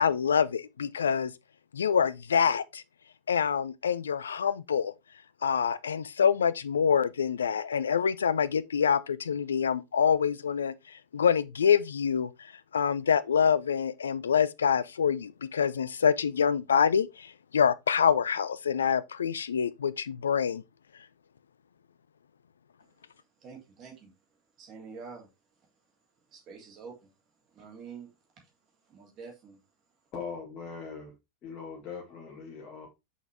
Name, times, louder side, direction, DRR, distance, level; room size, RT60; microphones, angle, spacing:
voice 1, 0.0-1.3 1.7-2.8 3.3-4.9 5.4-10.7 11.1-12.3 12.7-20.6, left 7 dB, 70° left, 0.5 m, -26 dB
voice 2, 23.4-24.1 24.6-25.3 26.3-27.1 27.5-28.1 28.8-29.6, right 5 dB, 35° right, 3.1 m, -47 dB
voice 3, 30.1-31.1 31.4-32.9, left 5 dB, 35° left, 1.8 m, -40 dB
6.2 x 5.7 x 3.4 m
figure-of-eight pair, 90°, 0 cm